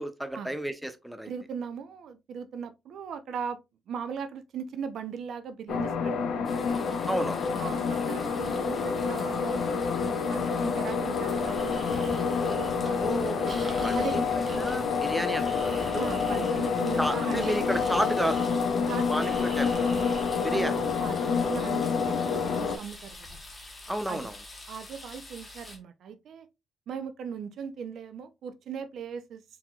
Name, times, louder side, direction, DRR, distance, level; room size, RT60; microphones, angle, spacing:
voice 1, 0.0-1.3 7.1-7.4 13.0-16.1 17.0-18.5 19.1-19.9 20.4-20.8 23.9-24.4, equal, ahead, 0.6 m, -32 dB
voice 2, 1.3-3.6 3.9-6.2 7.5-9.7 10.3-13.0 13.9-14.3 15.9-17.5 18.9-19.3 20.4-20.7 21.0-23.4 24.1-24.2 24.7-26.5 26.9-29.4, right 7 dB, 70° right, 0.6 m, -38 dB
sound 1, 5.7-22.8, left 5 dB, 70° left, 0.7 m, -28 dB
sound 2, 6.4-25.8, left 1 dB, 25° left, 1.3 m, -47 dB
Breathing, 11.4-21.1, right 1 dB, 30° right, 1.3 m, -44 dB
4.3 x 4.0 x 2.3 m
cardioid pair, 90°, 0 cm